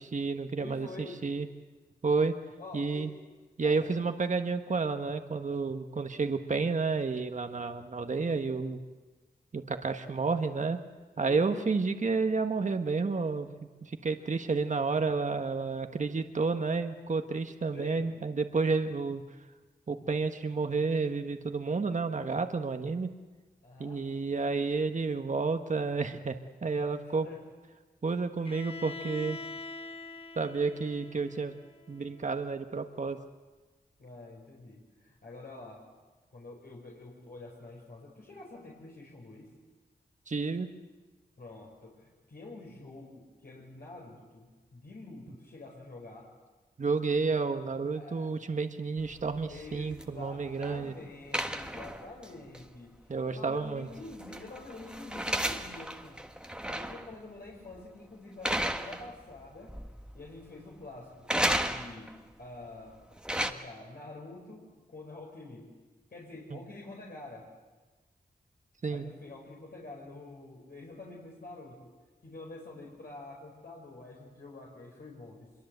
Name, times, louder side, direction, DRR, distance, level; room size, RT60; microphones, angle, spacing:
voice 1, 0.0-0.9 1.2-1.5 2.0-2.4 2.7-3.1 3.6-8.8 9.5-10.8 11.2-13.5 13.8-19.2 19.9-23.1 23.8-27.3 28.0-29.4 30.4-31.5 31.9-33.2 40.3-40.7 46.8-50.9 53.1-53.9 66.5-66.6 68.8-69.1, right 4 dB, 45° right, 7 dB, 1.3 m, -30 dB
voice 2, 0.6-1.2 2.6-3.2 3.6-3.9 11.2-11.7 17.7-18.2 23.6-24.0 27.0-27.5 34.0-35.9 36.3-39.5 41.4-46.3 47.9-48.3 49.5-56.2 56.5-59.8 60.1-61.3 61.6-63.0 63.4-65.8 66.1-67.5 68.9-71.9 72.2-75.5, left 2 dB, 65° left, -3 dB, 5.2 m, -47 dB
Bowed string instrument, 28.4-32.3, left 3 dB, 35° left, 1.3 m, -44 dB
sound 1, 49.0-50.8 51.3-52.3 52.5-52.6 53.9-57.1 57.5-57.8 58.4-59.4 59.7-60.3 61.3-62.2 62.9-63.5, right 1 dB, 5° right, 1.4 m, -34 dB
25.0 x 23.0 x 8.0 m, 1.3 s
wide cardioid pair, 80°, 17 cm